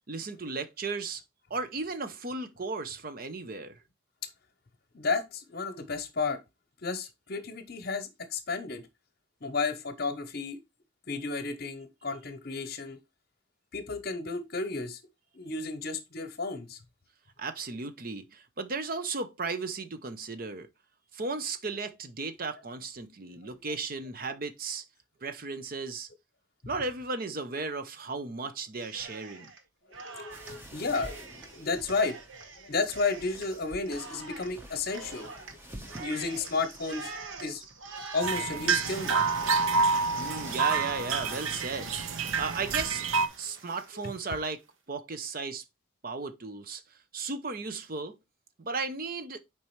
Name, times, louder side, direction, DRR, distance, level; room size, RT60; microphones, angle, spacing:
voice 1, 0.1-1.2 1.5-3.8 17.4-20.7 21.1-24.8 25.2-26.1 26.7-29.5 40.2-41.9 42.4-43.0 43.4-44.6 44.9-45.6 46.0-48.2 48.6-49.4, right 4 dB, 45° right, 0.7 m, -35 dB
voice 2, 4.9-6.4 6.8-8.9 9.4-10.6 11.1-13.0 13.7-15.0 15.3-16.8 30.0-32.2 32.6-35.5 36.0-37.1 37.4-37.6 38.1-39.5, left 4 dB, 50° left, 0.8 m, -32 dB
Cheering, 28.8-29.6 29.9-44.4, right 4 dB, 70° right, 1.3 m, -45 dB
sound 1, 30.3-42.8, equal, 10° right, 1.0 m, -49 dB
sound 2, 38.2-43.3, right 5 dB, 85° right, 0.7 m, -28 dB
7.3 x 4.7 x 3.1 m
head